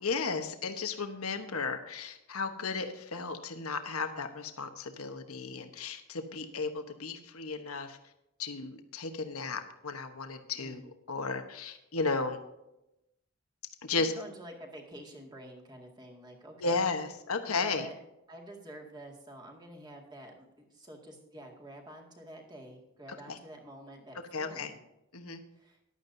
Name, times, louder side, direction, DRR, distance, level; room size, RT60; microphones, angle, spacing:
voice 1, 0.0-8.0 8.4-10.8 11.1-12.4 13.8-14.1 16.6-17.9 23.3-23.4 24.3-24.7 25.1-25.4, left 4 dB, 85° left, 7 dB, 1.1 m, -34 dB
voice 2, 10.5-10.9 13.9-16.9 17.5-18.0 18.3-24.8 25.5-25.8, right 1 dB, 20° right, 0 dB, 2.1 m, -48 dB
14.5 x 11.5 x 2.7 m, 0.89 s
head